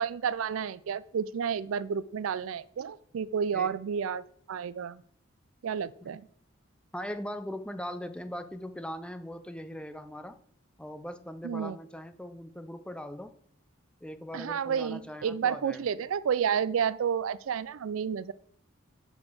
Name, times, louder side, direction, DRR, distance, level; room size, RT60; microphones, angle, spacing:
voice 1, 0.0-5.0 5.6-6.3 11.4-11.8 14.3-18.3, right 7 dB, 85° right, 18 dB, 0.4 m, -31 dB
voice 2, 6.9-10.4 10.8-13.3 14.0-15.8, equal, 5° left, 10 dB, 0.5 m, -40 dB
7.0 x 5.3 x 6.2 m, 0.63 s
head